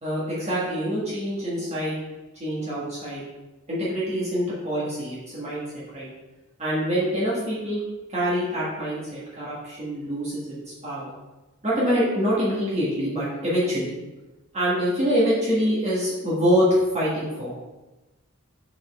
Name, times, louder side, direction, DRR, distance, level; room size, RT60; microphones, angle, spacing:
voice 1, 0.0-2.0 2.4-3.2 3.7-5.6 5.9-6.1 6.6-7.8 8.1-10.6 10.8-11.1 11.6-13.9 14.5-17.5, equal, 30° right, -8 dB, 1.6 m, -25 dB
5.5 x 5.0 x 3.5 m, 1.1 s
head